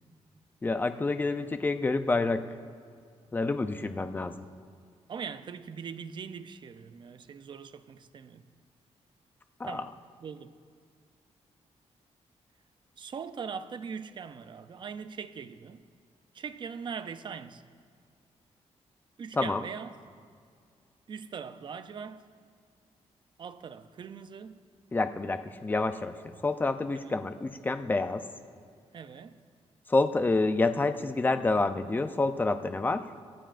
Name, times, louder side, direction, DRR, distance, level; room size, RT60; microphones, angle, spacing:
voice 1, 0.6-2.5 3.3-4.4 9.6-9.8 19.3-19.6 24.9-28.2 29.9-33.1, left 3 dB, 15° left, 0.5 m, -28 dB
voice 2, 5.1-8.4 9.6-9.9 10.2-10.5 13.0-15.8 16.3-17.6 19.2-19.9 21.1-22.2 23.4-24.5 27.0-27.2 28.9-29.4, right 6 dB, 40° right, 0.5 m, -41 dB
23.0 x 13.5 x 2.5 m
wide cardioid pair, 160°, 12 cm